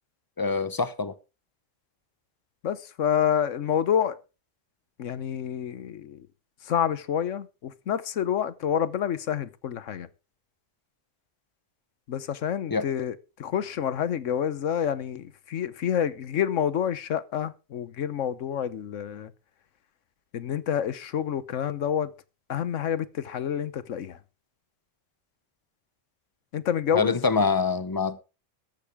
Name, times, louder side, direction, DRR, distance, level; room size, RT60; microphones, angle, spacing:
voice 1, 0.4-1.1 12.7-12.9 26.9-28.2, left 4 dB, 20° left, 0.8 m, -25 dB
voice 2, 2.6-4.2 5.0-6.3 6.6-10.1 12.1-19.3 20.3-22.1 22.5-24.2 26.5-27.2, left 9 dB, 85° left, 1.3 m, -28 dB
14.0 x 12.0 x 3.6 m
omnidirectional pair, 1.3 m